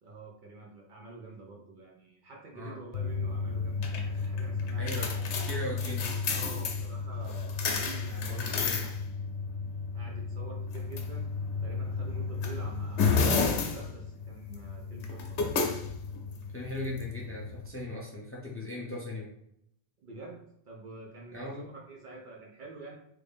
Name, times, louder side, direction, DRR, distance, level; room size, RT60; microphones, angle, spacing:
voice 1, 0.0-5.4 6.3-8.9 9.9-11.3 11.6-15.7 20.0-23.0, right 3 dB, 55° right, -1 dB, 0.7 m, -47 dB
sound 1, 2.9-17.7, left 4 dB, 85° left, 0.9 m, -32 dB
voice 2, 4.8-5.1 5.4-6.1 8.3-8.8 16.5-19.3 21.3-21.7, left 1 dB, 15° left, -3 dB, 0.5 m, -38 dB
3.3 x 2.6 x 3.4 m, 0.74 s
omnidirectional pair, 1.1 m